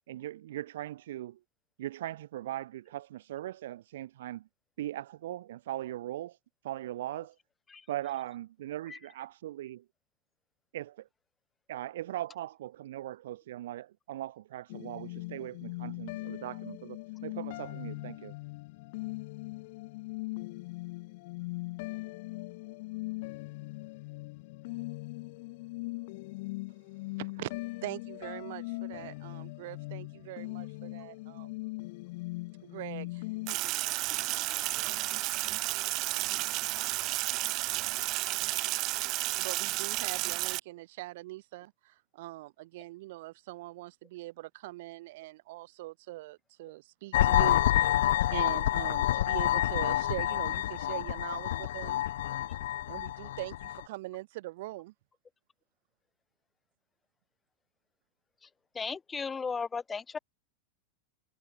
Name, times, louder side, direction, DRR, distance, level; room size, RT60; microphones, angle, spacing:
voice 1, 0.1-1.4 1.8-4.5 4.8-6.4 6.6-7.3 7.9-9.8 10.7-11.1 11.7-18.3, right 13 dB, 70° right, 0.8 m, -39 dB
sound 1, 14.7-33.6, left 23 dB, 45° left, 1.7 m, -40 dB
voice 2, 27.2-27.5 27.8-31.5 32.6-33.2 39.4-48.0 48.3-52.0 52.9-54.9, right 18 dB, 50° right, 4.2 m, -42 dB
Sink (filling or washing), 33.5-40.6, right 20 dB, 30° right, 0.4 m, -32 dB
sound 2, 47.1-53.8, left 13 dB, 75° left, 0.5 m, -28 dB
voice 3, 58.7-60.2, left 5 dB, 10° left, 0.6 m, -35 dB
supercardioid pair, 175°, 0 cm